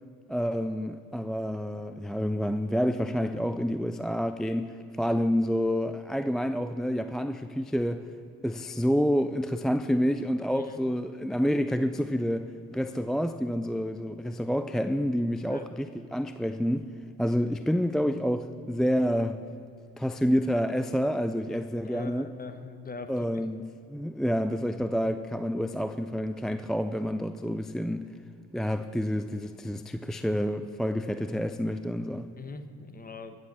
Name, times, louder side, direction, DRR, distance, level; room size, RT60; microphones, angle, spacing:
voice 1, 0.3-4.7 5.0-8.1 8.4-15.9 16.1-16.8 17.2-19.4 20.0-22.3 23.1-28.1 28.5-32.3, equal, ahead, 0.3 m, -28 dB
voice 2, 21.8-23.3 32.4-33.4, left 4 dB, 30° left, 1.1 m, -41 dB
14.0 x 7.9 x 7.3 m
supercardioid pair, 85°, 31 cm